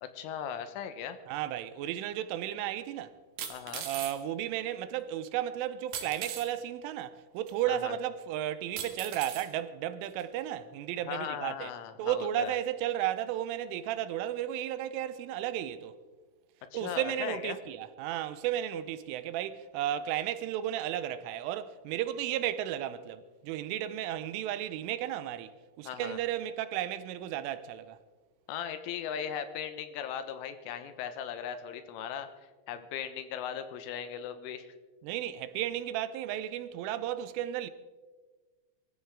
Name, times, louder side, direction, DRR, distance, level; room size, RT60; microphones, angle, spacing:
voice 1, 0.0-1.2 3.5-3.9 7.7-8.0 11.1-12.5 16.7-17.6 25.9-26.2 28.5-32.3 32.7-34.7, left 8 dB, 85° left, 3.6 m, -38 dB
voice 2, 1.3-3.1 3.9-11.7 12.0-16.0 16.7-25.5 25.8-28.0 35.0-37.7, right 11 dB, 85° right, 3.3 m, -34 dB
sound 1, 2.1-2.2 3.4-4.2 5.9-6.5 7.5-7.6 8.8-9.5 10.2-10.3, right 8 dB, 60° right, 2.8 m, -39 dB
23.5 x 14.0 x 3.7 m
omnidirectional pair, 5.6 m